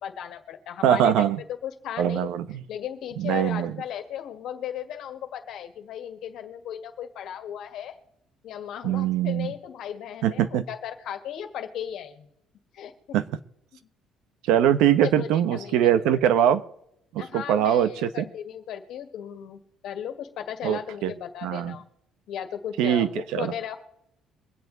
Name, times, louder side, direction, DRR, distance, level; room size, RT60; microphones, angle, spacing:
voice 1, 0.0-2.3 2.7-8.0 8.4-12.3 12.7-13.2 15.0-15.9 17.2-21.8 22.3-23.8, left 9 dB, 65° left, 7 dB, 1.8 m, -36 dB
voice 2, 0.8-1.4 2.0-2.6 3.2-3.7 8.8-9.5 10.2-10.6 13.1-13.2 14.5-16.6 17.1-18.1 20.6-21.1 21.4-21.8 22.8-23.5, right 10 dB, 85° right, 13 dB, 0.9 m, -22 dB
23.5 x 8.2 x 4.0 m, 0.76 s
cardioid pair, 135°, 0 cm